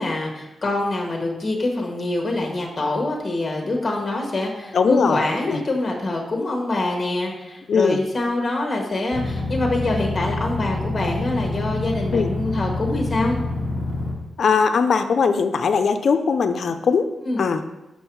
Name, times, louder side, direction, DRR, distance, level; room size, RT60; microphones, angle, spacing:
voice 1, 0.0-13.4 17.2-17.4, left 2 dB, 25° left, 1 dB, 1.2 m, -25 dB
voice 2, 4.7-5.2 5.5-5.6 7.7-8.0 12.1-12.3 14.4-17.1 17.4-17.6, left 5 dB, 60° left, 8 dB, 0.5 m, -20 dB
sound 1, 9.1-14.1, left 2 dB, 40° right, 2.3 m, -27 dB
6.1 x 5.4 x 4.6 m, 0.99 s
wide cardioid pair, 115°, 0 cm